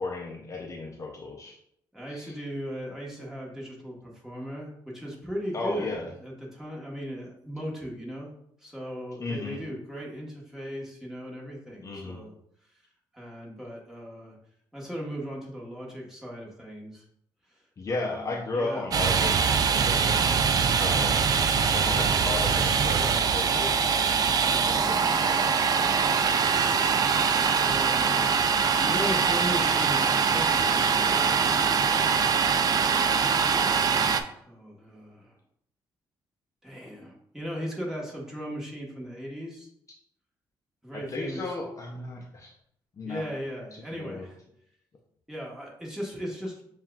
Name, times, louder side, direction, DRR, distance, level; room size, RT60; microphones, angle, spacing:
voice 1, 0.0-1.6 2.1-2.3 5.5-6.1 9.2-9.6 11.8-12.2 17.8-19.4 19.8-20.5 20.8-21.2 21.7-23.9 24.6-26.1 40.9-42.5 43.0-43.3 43.7-44.3, left 3 dB, 35° left, 0 dB, 0.6 m, -35 dB
voice 2, 1.9-8.3 8.6-12.3 13.1-14.4 14.7-17.0 17.5-17.6 17.9-19.0 24.5-24.9 27.6-28.2 28.8-32.3 33.5-35.3 36.6-39.7 40.8-41.4 43.0-44.4 45.3-46.6, equal, 5° right, -4 dB, 1.3 m, -37 dB
Domestic sounds home sounds, 18.9-34.2, right 6 dB, 45° right, 0.3 m, -23 dB
7.1 x 2.4 x 2.3 m, 0.72 s
cardioid pair, 95°, 9 cm